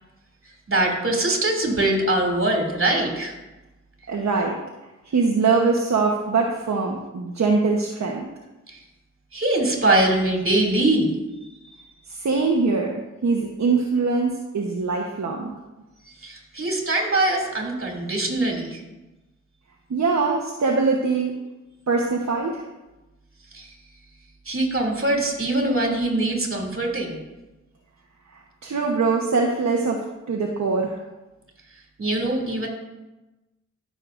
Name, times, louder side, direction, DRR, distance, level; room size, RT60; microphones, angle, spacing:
voice 1, 0.7-3.3 8.7-8.8 9.3-11.1 16.2-18.8 23.5-23.7 24.4-27.2 32.0-32.7, right 2 dB, 45° right, 1 dB, 2.9 m, -22 dB
voice 2, 4.1-4.6 5.0-8.2 12.1-12.9 13.2-15.5 19.9-21.3 21.9-22.6 28.6-31.0, right 4 dB, 60° right, 0 dB, 1.1 m, -22 dB
15.0 x 6.6 x 2.6 m, 1.0 s
cardioid pair, 50°, 31 cm